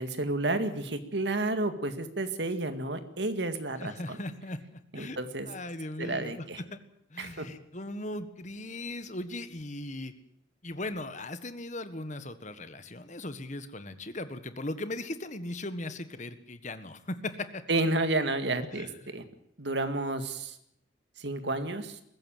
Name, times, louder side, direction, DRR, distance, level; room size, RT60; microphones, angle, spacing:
voice 1, 0.0-4.2 4.9-5.5 6.0-6.6 7.2-7.5 17.7-18.9 19.1-19.2 19.6-20.6 21.2-22.0, right 2 dB, 65° right, 9 dB, 2.1 m, -31 dB
voice 2, 3.8-5.2 5.5-6.4 6.7-6.8 7.1-10.1 10.6-17.6 18.7-18.9, left 2 dB, 40° left, 11 dB, 1.6 m, -38 dB
21.5 x 15.5 x 9.2 m, 0.73 s
head